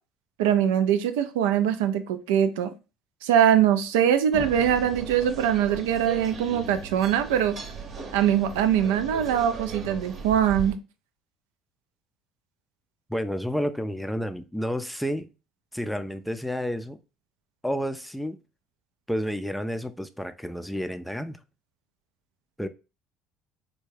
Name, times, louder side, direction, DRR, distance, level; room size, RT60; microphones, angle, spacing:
voice 1, 0.4-2.7 3.2-7.6 8.1-10.8, right 9 dB, 85° right, 0.4 m, -22 dB
sound 1, 4.3-10.7, right 4 dB, 50° right, 0.8 m, -37 dB
voice 2, 13.1-15.3 15.7-17.0 17.6-18.4 19.1-21.4 22.6-22.7, equal, 5° left, 0.4 m, -30 dB
3.3 x 2.2 x 3.2 m
supercardioid pair, 85°, 0 cm